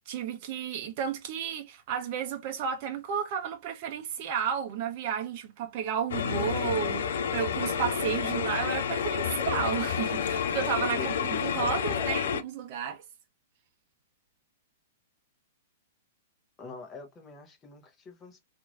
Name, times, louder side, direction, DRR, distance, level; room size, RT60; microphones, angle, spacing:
voice 1, 0.1-13.0, right 8 dB, 45° right, 0.6 m, -32 dB
sound 1, 6.1-12.4, left 7 dB, 60° left, 0.4 m, -30 dB
voice 2, 12.0-12.4 16.6-18.4, left 4 dB, 20° left, 0.9 m, -44 dB
2.9 x 2.6 x 2.3 m
figure-of-eight pair, 105°, 0 cm